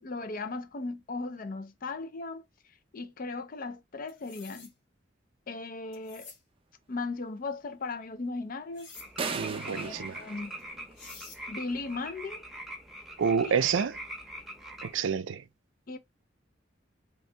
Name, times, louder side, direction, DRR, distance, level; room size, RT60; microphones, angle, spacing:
voice 1, 0.0-2.4 2.9-4.7 5.5-6.3 6.9-8.9 9.7-10.6 11.5-12.4 13.4-13.7 15.9-16.0, left 3 dB, 45° left, 0.5 m, -37 dB
sound 1, 4.1-4.7 5.9-6.4 8.7-9.1 10.6-10.7 11.0-11.4, left 4 dB, 70° left, 1.3 m, -48 dB
sound 2, 8.9-15.0, right 1 dB, ahead, 0.7 m, -43 dB
sound 3, 9.2-11.3, right 5 dB, 30° right, 0.5 m, -37 dB
voice 2, 9.3-10.2 13.2-14.0 14.8-15.4, right 6 dB, 85° right, 0.4 m, -28 dB
3.0 x 2.7 x 3.2 m
head